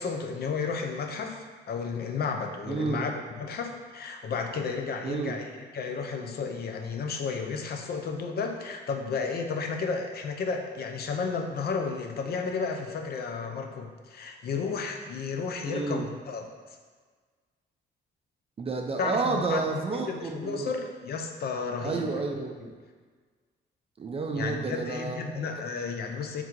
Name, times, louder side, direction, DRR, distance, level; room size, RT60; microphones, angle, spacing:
voice 1, 0.0-3.1 3.4-5.5 5.7-16.5 19.0-22.2 24.3-26.4, left 5 dB, 55° left, 4 dB, 0.5 m, -32 dB
voice 2, 2.7-3.0 5.0-5.4 15.7-16.1 18.6-20.7 21.8-22.8 24.0-25.4, right 3 dB, 30° right, 2 dB, 0.4 m, -30 dB
3.6 x 2.4 x 4.5 m, 1.5 s
cardioid pair, 90°, 20 cm